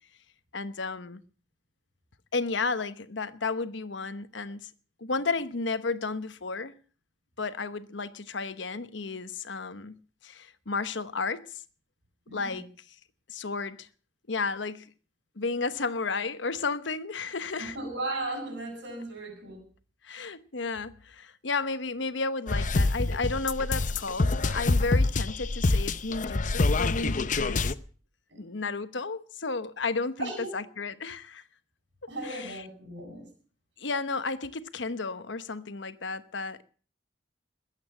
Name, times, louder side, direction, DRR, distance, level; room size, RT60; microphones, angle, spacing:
voice 1, 0.5-1.2 2.3-4.7 5.0-6.8 7.4-10.0 10.2-11.6 12.3-12.7 13.3-13.9 14.3-14.9 15.4-17.7 20.0-27.7 28.3-31.4 32.2-32.6 33.8-36.6, left 4 dB, 75° left, 1.1 m, -33 dB
voice 2, 12.3-12.6 17.6-19.6 28.3-28.4 30.2-30.7 32.1-33.3, right 2 dB, 70° right, 7.7 m, -36 dB
sound 1, 22.5-27.7, left 3 dB, 45° left, 0.7 m, -26 dB
21.0 x 8.8 x 7.3 m
head